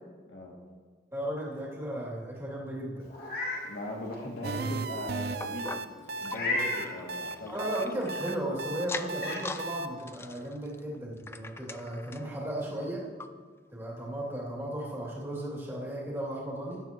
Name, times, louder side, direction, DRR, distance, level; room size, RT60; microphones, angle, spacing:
voice 1, 1.1-3.1 7.5-13.0 13.7-16.8, right 1 dB, 15° right, -6 dB, 2.7 m, -35 dB
Meow, 3.1-3.6 4.1-4.2 6.3-6.9 8.5-8.6 9.1-9.4, left 2 dB, 50° left, 2.8 m, -32 dB
voice 2, 3.6-7.7, left 1 dB, 80° left, -2 dB, 2.4 m, -39 dB
sound 1, 4.4-9.9, right 3 dB, 55° right, 0.5 m, -35 dB
sound 2, 5.4-8.4 8.8-9.7 10.0-12.3 12.8-12.9 13.2-13.3 13.9-14.0, left 3 dB, 15° left, 0.3 m, -42 dB
16.5 x 12.0 x 3.0 m, 1.5 s
head